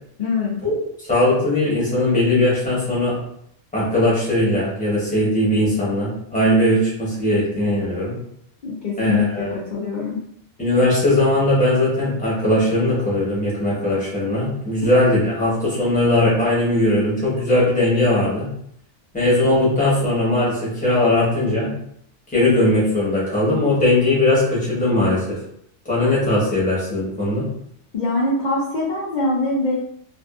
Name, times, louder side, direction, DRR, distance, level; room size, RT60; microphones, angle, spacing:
voice 1, 0.2-0.6 8.6-10.2 27.9-29.8, left 3 dB, 55° left, -5 dB, 0.5 m, -23 dB
voice 2, 1.0-3.2 3.7-8.1 9.0-9.5 10.6-18.5 19.1-21.7 22.3-25.4 25.9-27.5, left 1 dB, 5° left, -7 dB, 0.9 m, -19 dB
2.5 x 2.4 x 2.3 m, 0.72 s
omnidirectional pair, 1.3 m